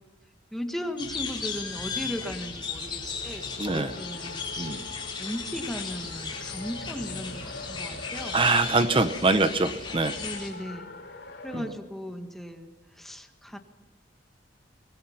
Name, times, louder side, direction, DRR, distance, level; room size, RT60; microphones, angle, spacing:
voice 1, 0.5-4.8 5.2-8.4 10.2-10.9 11.4-13.6, equal, ahead, 5 dB, 1.6 m, -37 dB
sound 1, 1.0-10.5, left 5 dB, 25° left, 4.5 m, -36 dB
Race car auto racing, 2.4-11.7, left 2 dB, 60° left, 5.0 m, -44 dB
voice 2, 3.6-3.9 4.6-4.8 8.3-10.2 11.5-11.7, right 3 dB, 30° right, 11 dB, 0.9 m, -24 dB
24.0 x 21.0 x 5.8 m, 1.2 s
head